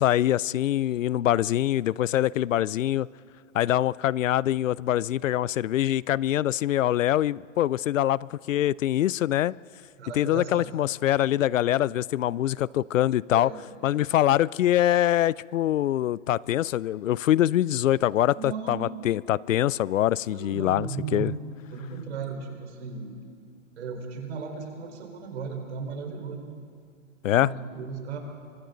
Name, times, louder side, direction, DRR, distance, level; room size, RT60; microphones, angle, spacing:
voice 1, 0.0-3.1 3.5-9.5 10.2-13.5 13.8-21.3 27.2-27.5, left 12 dB, 75° left, 0.5 m, -24 dB
voice 2, 10.0-10.7 13.3-13.6 18.3-18.9 20.2-21.4 21.7-23.1 23.8-26.5 27.3-28.2, right 5 dB, 60° right, 4.4 m, -36 dB
29.5 x 24.5 x 3.9 m
hypercardioid pair, 170°, 39 cm